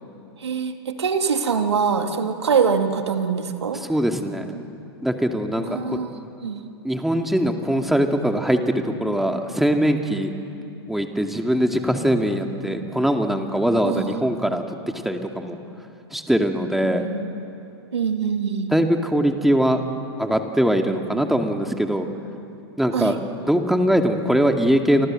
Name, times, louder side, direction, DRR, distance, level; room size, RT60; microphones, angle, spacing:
voice 1, 0.4-3.8 5.7-6.1 6.4-6.6 13.8-14.2 17.0-17.3 17.9-18.7 22.9-23.2, right 6 dB, 80° right, 6 dB, 2.5 m, -23 dB
voice 2, 3.9-4.5 5.0-5.7 5.9-6.0 6.8-10.3 10.9-15.6 16.1-17.0 18.7-19.8 20.2-22.1 22.8-25.1, equal, ahead, 4 dB, 2.3 m, -21 dB
29.5 x 25.0 x 7.7 m, 2.7 s
hypercardioid pair, 110°, 14 cm